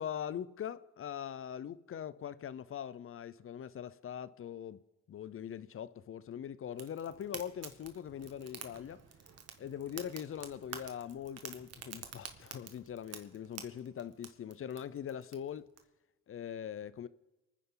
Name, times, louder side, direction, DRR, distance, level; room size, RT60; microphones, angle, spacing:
voice 1, 0.0-4.8 5.1-9.0 9.6-15.7 16.3-17.1, left 9 dB, 45° left, 0.6 m, -42 dB
Fire, 6.8-15.8, right 7 dB, 55° right, 1.7 m, -50 dB
24.0 x 10.0 x 3.9 m
cardioid pair, 90°, 30 cm